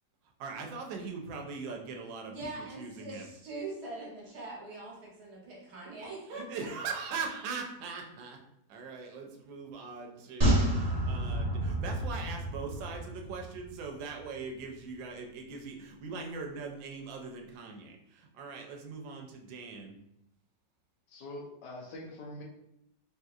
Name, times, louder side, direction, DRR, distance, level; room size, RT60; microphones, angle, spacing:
voice 1, 0.4-2.4 2.8-3.3 6.3-8.4 8.7-20.0, right 4 dB, 85° right, 2 dB, 1.3 m, -41 dB
voice 2, 2.2-6.5 6.8-6.9, right 2 dB, 65° right, -3 dB, 1.5 m, -42 dB
sound 1, 10.4-13.8 14.1-14.2, right 1 dB, 25° right, 0.9 m, -29 dB
voice 3, 21.1-22.4, left 1 dB, 75° left, -2 dB, 1.3 m, -44 dB
3.6 x 2.7 x 2.3 m, 0.79 s
omnidirectional pair, 1.9 m